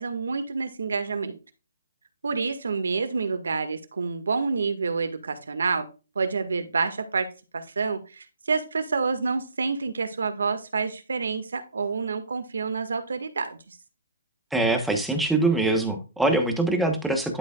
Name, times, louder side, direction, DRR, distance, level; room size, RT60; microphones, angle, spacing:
voice 1, 0.0-1.4 2.2-5.9 6.2-7.3 7.5-13.8, right 4 dB, 85° right, 9 dB, 1.7 m, -28 dB
voice 2, 14.5-17.4, right 2 dB, ahead, 5 dB, 1.0 m, -23 dB
11.5 x 4.9 x 2.4 m, 0.31 s
hypercardioid pair, 165°, 0 cm